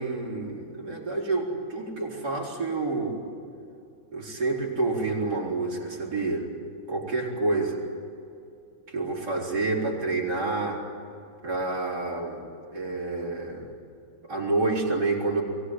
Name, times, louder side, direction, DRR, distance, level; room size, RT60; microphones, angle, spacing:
voice 1, 0.0-3.2 4.1-6.5 6.9-7.8 8.9-10.8 11.4-12.4 12.7-13.7 14.2-15.4, right 3 dB, 50° right, -3 dB, 4.9 m, -28 dB
23.0 x 18.0 x 9.9 m, 2.6 s
omnidirectional pair, 2.2 m